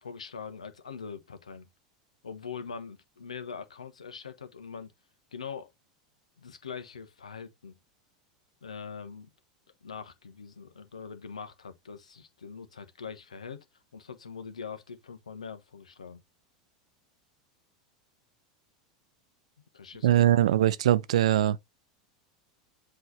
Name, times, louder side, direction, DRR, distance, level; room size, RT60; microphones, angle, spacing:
voice 1, 0.0-1.7 2.2-4.9 5.3-5.7 6.4-7.7 8.6-9.3 9.8-13.6 13.9-16.2 19.7-20.2, left 6 dB, 90° left, 1.1 m, -42 dB
voice 2, 20.0-21.6, right 12 dB, 75° right, 0.5 m, -22 dB
8.0 x 3.3 x 4.1 m
hypercardioid pair, 90°, 4 cm